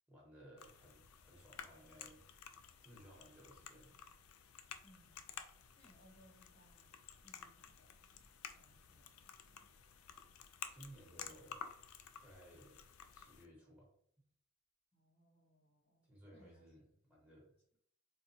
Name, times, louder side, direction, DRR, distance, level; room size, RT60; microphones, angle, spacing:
voice 1, 0.1-4.0 10.7-11.6 12.2-12.8 13.1-13.9 16.0-17.6, right 1 dB, 5° right, -5 dB, 1.1 m, -60 dB
sound 1, 0.6-13.5, left 8 dB, 80° left, 0.4 m, -54 dB
voice 2, 4.8-5.5 5.7-9.7 11.1-11.4 14.9-16.7, equal, 30° left, -3 dB, 0.9 m, -69 dB
4.2 x 2.2 x 2.7 m, 0.65 s
head